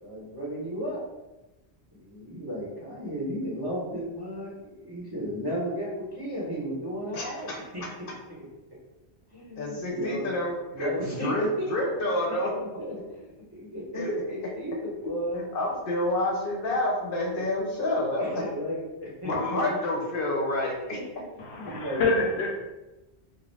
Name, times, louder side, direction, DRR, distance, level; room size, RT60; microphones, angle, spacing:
voice 1, 0.0-1.0 1.9-8.4 9.3-10.3 10.7-15.4 17.4-17.5 18.2-19.8 21.5-22.0, equal, 25° right, -8 dB, 0.7 m, -34 dB
voice 2, 7.1-7.6 9.6-12.5 13.9-14.4 15.4-18.4 19.2-21.0, left 1 dB, 60° left, -1 dB, 0.7 m, -28 dB
voice 3, 21.4-22.5, left 3 dB, 90° left, 1 dB, 0.9 m, -26 dB
2.4 x 2.0 x 3.1 m, 1.0 s
omnidirectional pair, 1.1 m